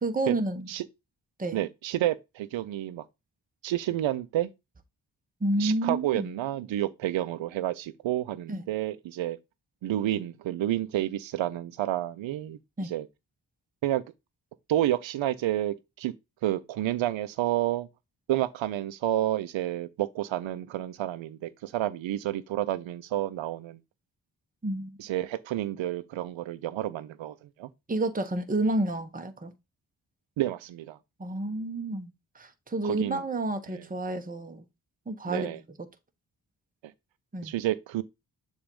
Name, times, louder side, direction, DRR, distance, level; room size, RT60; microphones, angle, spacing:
voice 1, 0.0-0.7 1.4-1.6 5.4-6.3 8.5-8.6 12.8-12.9 24.6-25.0 27.9-29.5 31.2-34.7 35.1-35.6 37.3-37.5, right 2 dB, 20° right, 1.0 m, -30 dB
voice 2, 1.5-3.0 3.6-4.5 5.6-9.4 9.8-13.1 13.8-14.0 14.7-16.1 16.4-17.9 18.3-23.8 25.0-27.7 30.4-31.0 32.8-33.2 33.7-33.8 35.3-35.6 37.4-38.0, right 13 dB, 85° right, 0.7 m, -30 dB
7.0 x 2.6 x 5.3 m
supercardioid pair, 40°, 45 cm